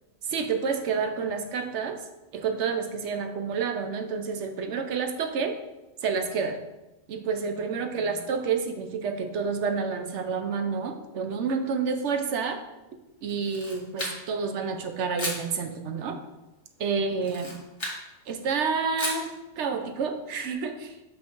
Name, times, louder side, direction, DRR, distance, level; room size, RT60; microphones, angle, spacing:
voice 1, 0.3-2.0 2.3-5.6 6.0-6.6 7.1-12.6 13.2-16.2 16.8-17.5 18.3-21.0, right 5 dB, 60° right, 6 dB, 0.9 m, -29 dB
Camera, 13.3-14.5 15.2-15.5 17.2-18.0 19.0-19.3, left 1 dB, 20° left, 1.4 m, -34 dB
6.5 x 5.9 x 3.0 m, 1.0 s
omnidirectional pair, 1.5 m